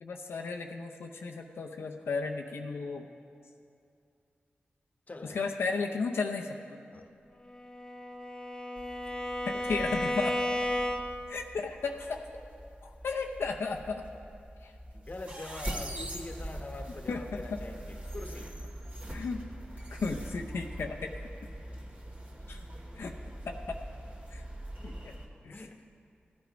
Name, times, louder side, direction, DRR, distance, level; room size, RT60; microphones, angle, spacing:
voice 1, 0.0-3.1 5.3-6.8 9.5-10.3 11.3-12.2 12.8-14.0 14.6-14.7 17.1-17.6 19.1-19.4 19.9-21.1 22.5-22.6 23.0-23.1 23.4-23.8 24.3-24.4 24.8-25.1 25.4-25.6, left 4 dB, 85° left, 1 dB, 0.7 m, -34 dB
voice 2, 5.1-5.4 6.9-7.1 9.5-9.9 14.9-18.6 25.5-25.9, left 2 dB, 40° left, 5 dB, 1.1 m, -44 dB
Bowed string instrument, 7.5-11.3, left 1 dB, 15° left, 1.0 m, -33 dB
sound 1, 8.8-25.3, right 1 dB, 35° right, 2.2 m, -43 dB
15.0 x 9.5 x 5.1 m, 2.5 s
cardioid pair, 45°, 4 cm